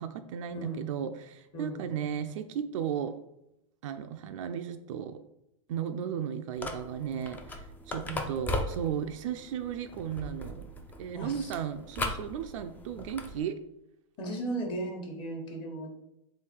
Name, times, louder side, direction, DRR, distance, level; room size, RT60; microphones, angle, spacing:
voice 1, 0.0-3.1 3.8-5.2 5.7-10.7 11.0-13.6, right 8 dB, 70° right, 7 dB, 0.4 m, -35 dB
voice 2, 1.5-2.0 8.0-8.4 11.1-11.5 14.2-15.9, right 2 dB, 30° left, 1 dB, 1.1 m, -36 dB
sound 1, 6.6-13.4, left 1 dB, 10° left, 0.4 m, -38 dB
3.8 x 2.6 x 4.4 m, 0.85 s
supercardioid pair, 135°, 17 cm